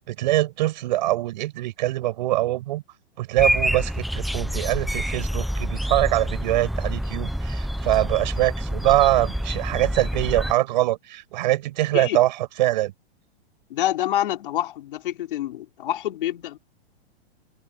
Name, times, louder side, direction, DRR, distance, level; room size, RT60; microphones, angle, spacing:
voice 1, 0.0-2.8 3.2-12.9, right 16 dB, 45° right, 7.9 m, -23 dB
sound 1, 3.4-10.5, equal, ahead, 0.8 m, -27 dB
voice 2, 13.7-16.6, left 13 dB, 50° left, 4.8 m, -27 dB
hypercardioid pair, 175°, 33 cm